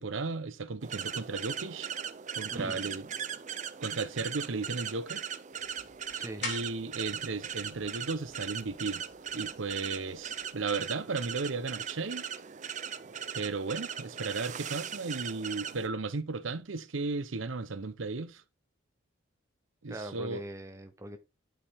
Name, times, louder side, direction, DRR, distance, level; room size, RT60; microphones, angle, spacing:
voice 1, 0.0-1.9 2.4-3.1 3.8-5.2 6.4-9.0 9.3-12.3 13.3-18.4 19.8-20.4, right 4 dB, 80° right, 0.7 m, -35 dB
sound 1, 0.8-15.9, right 8 dB, 40° right, 0.5 m, -39 dB
sound 2, 5.5-10.5, left 3 dB, 60° left, 2.3 m, -47 dB
voice 2, 6.1-6.5 19.9-21.2, right 1 dB, 15° right, 0.8 m, -41 dB
11.5 x 5.0 x 3.5 m
head